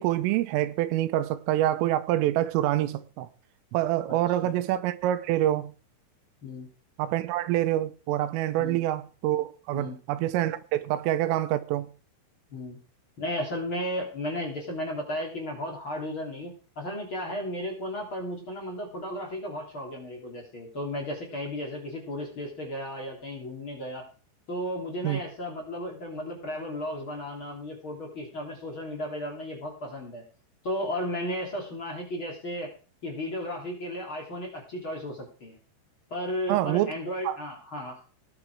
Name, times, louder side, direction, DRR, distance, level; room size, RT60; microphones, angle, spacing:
voice 1, 0.0-3.3 3.7-5.7 7.0-11.9 25.0-25.2 36.5-36.9 37.3-37.4, right 13 dB, 90° right, 3.6 m, -26 dB
voice 2, 4.1-4.5 6.4-6.7 8.6-8.8 9.7-10.0 12.5-12.8 13.2-24.1 24.5-30.2 30.6-32.7 33.0-35.6 36.1-38.0, left 1 dB, 30° left, 3.2 m, -34 dB
18.5 x 7.6 x 4.7 m
omnidirectional pair, 5.7 m